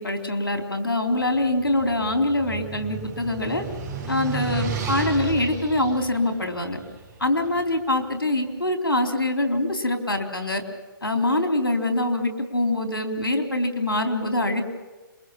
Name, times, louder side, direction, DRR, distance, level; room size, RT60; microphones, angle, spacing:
voice 1, 0.0-3.6 4.1-6.8 7.2-10.6 11.0-14.6, left 1 dB, 90° left, 4 dB, 4.1 m, -24 dB
sound 1, 1.3-7.6, right 6 dB, 25° right, 5.8 m, -33 dB
27.0 x 23.0 x 7.5 m, 1.2 s
figure-of-eight pair, 135°, 12 cm